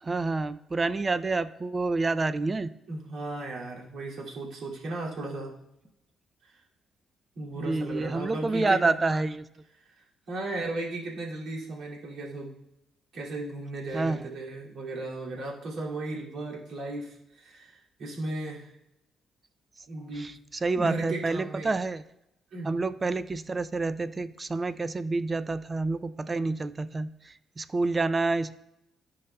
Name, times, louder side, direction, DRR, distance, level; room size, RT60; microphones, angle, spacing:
voice 1, 0.0-2.7 7.6-9.4 13.9-14.3 20.2-22.0 22.6-28.6, right 3 dB, 30° right, 14 dB, 0.4 m, -28 dB
voice 2, 2.9-5.5 6.4-6.6 7.4-8.9 9.8-12.5 13.1-18.7 19.9-20.3 20.7-21.7 22.5-22.8, right 2 dB, 70° right, -4 dB, 2.4 m, -36 dB
14.5 x 5.5 x 2.3 m, 0.86 s
cardioid pair, 90°, 0 cm